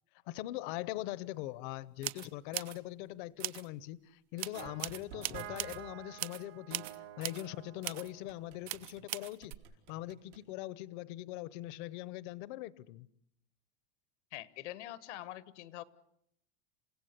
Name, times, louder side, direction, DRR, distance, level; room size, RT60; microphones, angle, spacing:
voice 1, 0.3-9.6 9.9-13.1, left 15 dB, 45° left, 0.8 m, -42 dB
sound 1, 1.3-1.4 2.0-2.8 3.4-3.7 4.4-5.8 6.2-6.4 6.7-7.5 7.8-8.1 8.7-9.5, right 17 dB, 65° right, 0.9 m, -40 dB
sound 2, 4.5-9.1 9.4-10.4, right 11 dB, 90° right, 4.9 m, -50 dB
voice 2, 14.3-15.8, left 14 dB, 85° left, 1.4 m, -44 dB
28.5 x 16.5 x 8.2 m
supercardioid pair, 170°, 34 cm